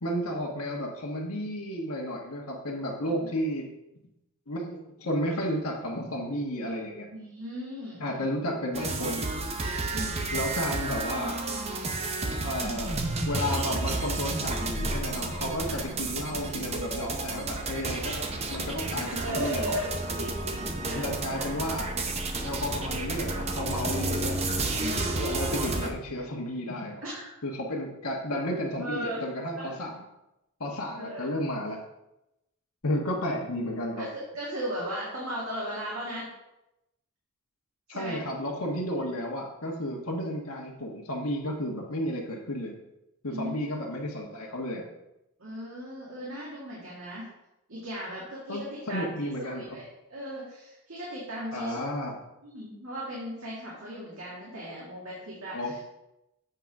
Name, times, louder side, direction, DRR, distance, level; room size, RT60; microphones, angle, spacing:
voice 1, 0.0-3.6 4.5-7.1 8.0-9.3 10.3-11.4 12.4-18.2 18.5-19.7 20.9-21.9 22.4-24.4 25.1-27.0 27.4-30.0 30.6-31.8 32.8-34.1 37.9-42.7 43.2-44.9 48.5-48.6 48.9-49.8 51.5-52.1 55.5-55.9, equal, 80° left, -1 dB, 1.4 m, -32 dB
voice 2, 7.1-8.2 9.9-10.6 15.7-15.8 19.2-21.5 24.8-25.1 27.0-27.3 28.8-29.2 29.5-29.8 31.0-31.3 34.0-36.3 37.9-38.2 43.3-43.7 45.4-47.3 47.7-51.8 52.4-55.8, equal, 70° right, -6 dB, 2.1 m, -37 dB
sound 1, 8.7-25.9, right 2 dB, 30° right, 0.7 m, -31 dB
8.1 x 3.9 x 5.9 m, 0.90 s
head